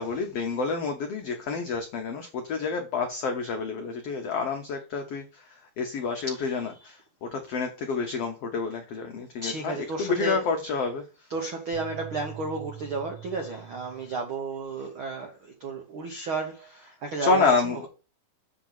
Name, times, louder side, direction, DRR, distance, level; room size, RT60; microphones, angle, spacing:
voice 1, 0.0-11.3 17.2-17.9, left 4 dB, 85° left, 1.3 m, -29 dB
voice 2, 9.4-10.4 11.3-17.5, right 3 dB, 90° right, 1.1 m, -32 dB
sound 1, 11.7-14.2, right 11 dB, 30° right, 1.4 m, -43 dB
7.6 x 3.7 x 5.7 m
omnidirectional pair, 4.1 m